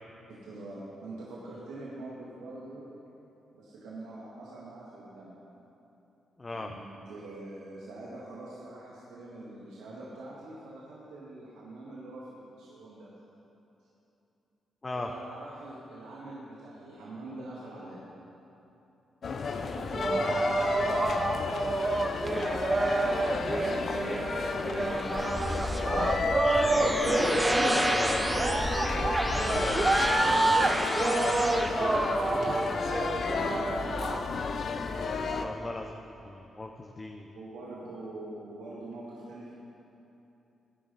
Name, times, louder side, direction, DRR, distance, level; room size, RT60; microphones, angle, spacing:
voice 1, 0.3-2.9 3.5-5.4 6.5-13.1 14.9-18.1 19.6-20.4 21.8-26.1 26.8-28.6 29.3-30.9 37.3-39.5, right 2 dB, 85° right, -7 dB, 1.9 m, -44 dB
voice 2, 6.4-6.7 14.8-15.1 21.3-21.6 27.9-28.3 32.2-33.5 33.9-37.3, left 2 dB, 30° left, 3 dB, 0.8 m, -41 dB
sound 1, 19.2-35.5, left 4 dB, 60° left, 0.8 m, -32 dB
sound 2, 19.9-34.2, right 2 dB, 35° right, 0.9 m, -29 dB
sound 3, 24.0-31.7, equal, 5° right, 1.4 m, -32 dB
16.5 x 10.0 x 4.2 m, 2.9 s
supercardioid pair, 55°, 0 cm